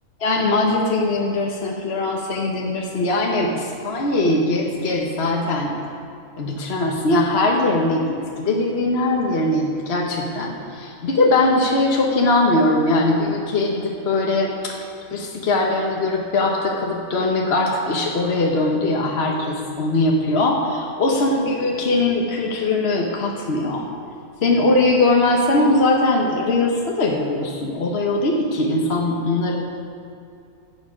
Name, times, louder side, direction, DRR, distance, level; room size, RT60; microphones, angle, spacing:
voice 1, 0.2-5.8 6.4-23.8 24.4-29.6, left 2 dB, 50° left, -1 dB, 1.2 m, -21 dB
15.0 x 7.9 x 5.1 m, 2.5 s
omnidirectional pair, 1.5 m